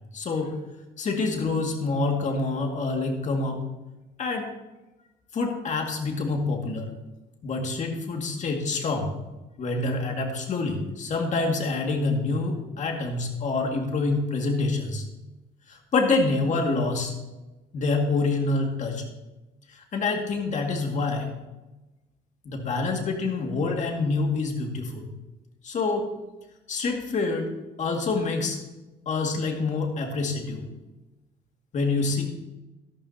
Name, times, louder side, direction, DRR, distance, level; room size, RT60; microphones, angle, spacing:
voice 1, 0.1-0.6 1.0-3.6 4.2-4.5 5.3-6.9 7.4-9.1 9.6-15.0 15.7-17.1 17.7-19.0 19.7-21.3 22.5-25.1 25.6-26.1 26.7-27.5 27.8-28.6 29.1-30.7 31.7-32.2, left 3 dB, 45° left, 2 dB, 2.1 m, -26 dB
12.5 x 12.5 x 2.8 m, 1.0 s
cardioid pair, 110°, 17 cm